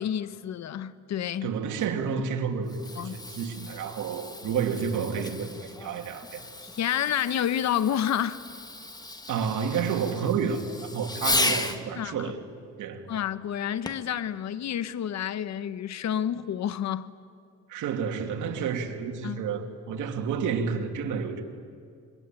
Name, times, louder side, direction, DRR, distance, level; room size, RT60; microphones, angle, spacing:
voice 1, 0.0-1.5 3.0-3.2 6.7-8.4 11.3-11.4 12.0-12.3 13.1-17.1 19.2-19.4, left 10 dB, 65° left, 1.1 m, -29 dB
voice 2, 1.4-6.4 9.3-10.6 10.9-12.4 12.8-13.0 17.7-21.4, right 6 dB, 80° right, 2.6 m, -30 dB
Fireworks, 2.5-11.8 13.9-14.2 14.9-15.0, left 2 dB, 15° left, 1.6 m, -34 dB
26.5 x 22.5 x 9.0 m
cardioid pair, 90°, 30 cm